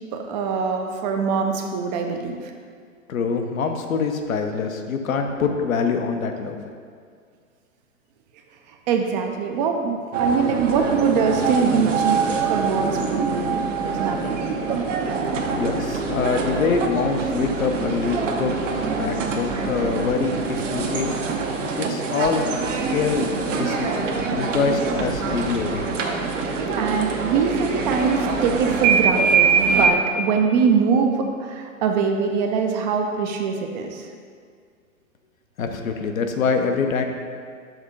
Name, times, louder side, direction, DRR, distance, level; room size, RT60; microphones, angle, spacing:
voice 1, 0.1-2.4 8.9-14.5 26.8-34.1, right 5 dB, 30° right, 3 dB, 0.5 m, -23 dB
voice 2, 3.1-6.6 15.5-21.1 21.8-22.5 22.9-24.0 24.3-26.0 35.6-37.1, left 5 dB, 70° left, 5 dB, 0.8 m, -25 dB
sound 1, 10.1-29.9, right 5 dB, 60° right, 0.8 m, -24 dB
6.4 x 3.6 x 4.9 m, 2.1 s
figure-of-eight pair, 100°, 42 cm